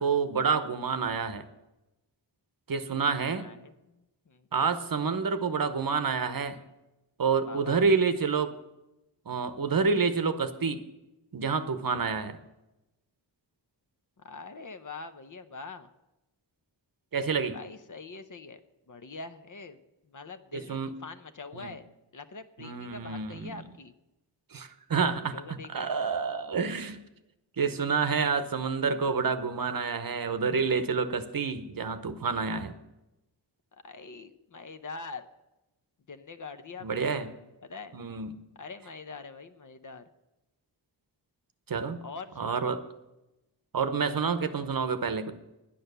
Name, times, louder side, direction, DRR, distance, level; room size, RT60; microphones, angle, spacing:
voice 1, 0.0-1.4 2.7-3.5 4.5-6.6 7.2-8.5 9.3-10.8 11.3-12.4 17.1-17.6 20.5-20.9 21.5-21.7 22.6-23.6 24.5-27.0 27.6-32.7 36.8-37.3 37.9-38.3 41.7-42.0 42.4-42.8 43.7-45.3, right 5 dB, 50° right, 10 dB, 0.8 m, -28 dB
voice 2, 3.4-4.5 7.5-7.8 14.2-15.9 17.5-18.6 18.9-19.8 20.0-21.8 22.1-23.9 25.3-25.9 33.8-35.3 36.1-37.1 37.6-38.0 38.6-40.0 42.0-42.7, left 4 dB, 45° left, 9 dB, 0.7 m, -44 dB
10.0 x 9.2 x 6.7 m, 0.96 s
wide cardioid pair, 135°, 44 cm